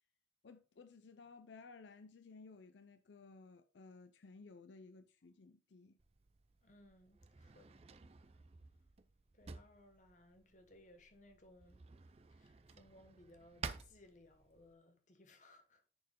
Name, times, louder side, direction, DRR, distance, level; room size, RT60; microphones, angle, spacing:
voice 1, 0.4-6.0, left 4 dB, 75° left, 0.5 m, -57 dB
Drawer open or close, 6.0-14.7, right 5 dB, 35° right, 0.4 m, -53 dB
voice 2, 6.6-8.0 9.3-11.8 12.3-15.9, left 1 dB, 40° left, 1.2 m, -63 dB
10.5 x 4.4 x 3.6 m
head